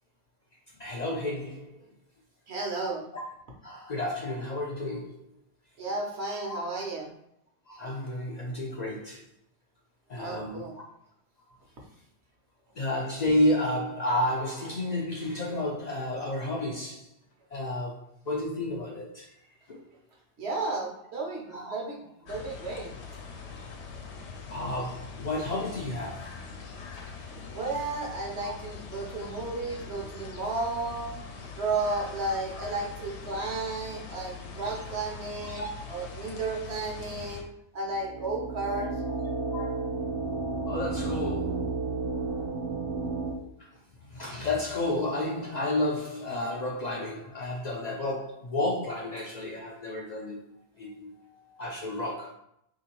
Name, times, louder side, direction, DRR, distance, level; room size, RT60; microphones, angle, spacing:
voice 1, 0.8-1.7 3.1-3.2 3.6-5.2 6.5-6.6 7.7-9.2 10.1-10.8 12.8-17.1 17.5-19.3 19.7-19.8 21.5-21.7 23.5-23.6 24.5-26.3 26.9-27.0 28.4-28.5 34.6-34.7 35.0-35.1 35.4-35.7 38.7-38.8 39.1-39.2 39.5-39.9 40.7-41.7 44.1-50.4 50.8-51.1 51.6-52.3, left 1 dB, 55° left, -1 dB, 0.5 m, -31 dB
voice 2, 2.5-3.0 5.8-7.1 10.1-10.7 20.4-22.9 27.5-37.5 37.7-38.9 51.2-51.6, right 3 dB, 70° right, -1 dB, 1.1 m, -33 dB
sound 1, 22.2-37.4, left 5 dB, 75° left, 0.9 m, -42 dB
sound 2, 37.8-43.3, right 3 dB, 40° right, 0.4 m, -32 dB
3.6 x 2.7 x 2.9 m, 0.75 s
omnidirectional pair, 1.1 m